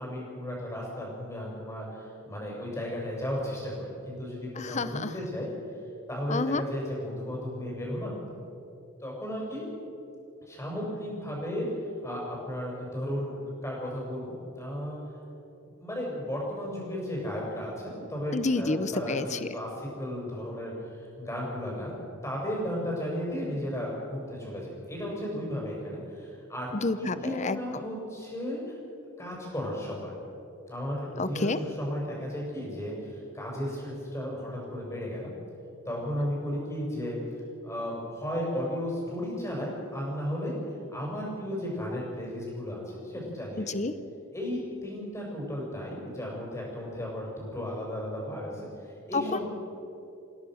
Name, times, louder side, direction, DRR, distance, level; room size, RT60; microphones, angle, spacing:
voice 1, 0.0-5.5 6.1-8.2 9.0-9.7 10.5-11.6 12.0-13.4 13.6-15.0 15.8-21.9 22.2-26.7 27.2-28.8 29.2-30.1 30.7-35.3 35.8-37.2 37.6-40.5 40.9-43.8 44.3-49.4, equal, 15° left, -3 dB, 6.9 m, -34 dB
voice 2, 4.5-5.1 6.3-6.6 18.3-19.5 26.7-27.8 31.2-31.6 43.6-43.9 49.1-49.4, left 3 dB, 35° left, 13 dB, 0.8 m, -29 dB
27.0 x 17.5 x 6.5 m, 2.7 s
head